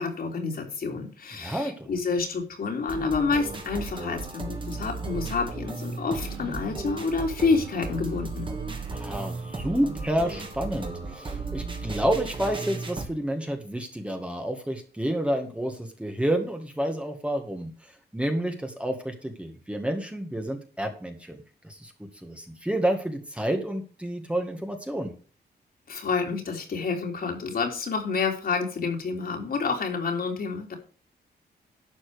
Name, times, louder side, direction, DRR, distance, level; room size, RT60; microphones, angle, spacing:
voice 1, 0.0-8.5 25.9-30.8, left 4 dB, 60° left, 2 dB, 3.4 m, -28 dB
voice 2, 1.4-1.9 8.9-25.1, right 1 dB, 5° right, 4 dB, 1.8 m, -29 dB
sound 1, 2.9-13.0, right 3 dB, 30° right, 2.3 m, -35 dB
12.0 x 7.3 x 5.0 m, 0.38 s
wide cardioid pair, 145°, 18 cm